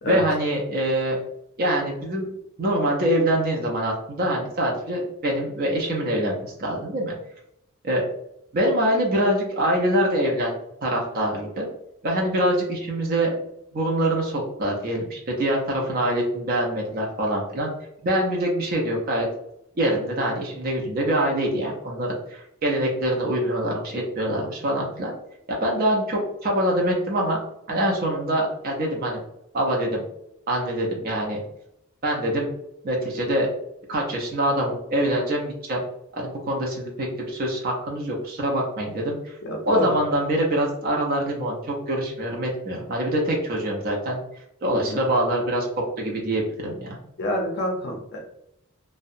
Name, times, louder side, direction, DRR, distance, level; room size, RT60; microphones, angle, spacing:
voice 1, 0.0-1.2 1.6-2.3 2.6-7.1 7.8-8.0 8.5-10.5 10.8-11.7 12.0-13.3 13.7-17.7 18.0-19.3 19.8-25.1 25.5-27.4 27.7-29.2 29.5-30.0 30.5-31.4 32.0-32.5 32.8-33.5 33.9-35.8 36.2-39.4 39.7-44.2 44.6-45.7 46.0-47.0, right 1 dB, 45° right, -1 dB, 0.5 m, -24 dB
voice 2, 39.4-39.9 44.7-45.0 47.2-48.2, equal, 50° left, 0 dB, 0.5 m, -27 dB
2.7 x 2.1 x 2.4 m, 0.78 s
head